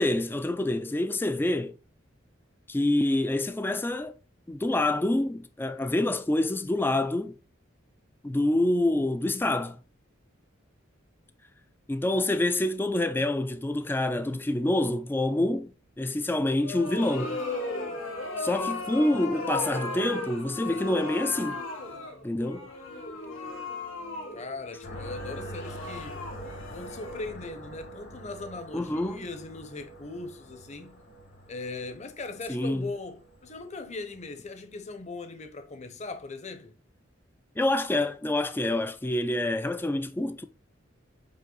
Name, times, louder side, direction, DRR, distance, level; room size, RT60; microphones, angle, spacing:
voice 1, 0.0-1.8 2.7-4.1 4.5-7.3 8.2-9.8 11.9-15.7 16.0-17.4 18.4-21.6 22.2-22.7 28.7-29.2 32.5-32.9 37.6-40.5, left 1 dB, 10° left, 0.3 m, -27 dB
sound 1, 16.6-27.5, left 2 dB, 90° left, 2.4 m, -36 dB
voice 2, 24.3-26.2 26.7-31.0 31.5-36.7, left 3 dB, 35° left, 0.9 m, -39 dB
sound 2, 24.8-34.4, equal, 55° left, 1.4 m, -45 dB
5.4 x 5.3 x 3.9 m
head